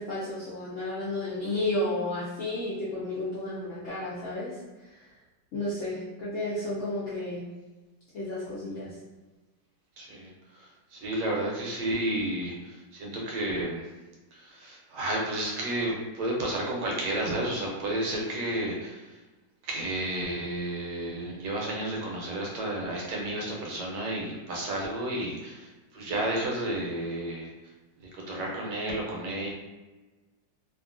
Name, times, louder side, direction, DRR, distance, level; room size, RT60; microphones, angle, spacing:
voice 1, 0.0-4.5 5.5-7.4 8.1-8.9, left 1 dB, 70° left, -9 dB, 0.7 m, -32 dB
voice 2, 10.0-10.3 10.5-10.7 10.9-13.8 14.4-19.0 19.6-27.5 28.3-29.5, right 1 dB, 70° right, -2 dB, 1.2 m, -31 dB
2.9 x 2.4 x 2.4 m, 1.2 s
omnidirectional pair, 2.0 m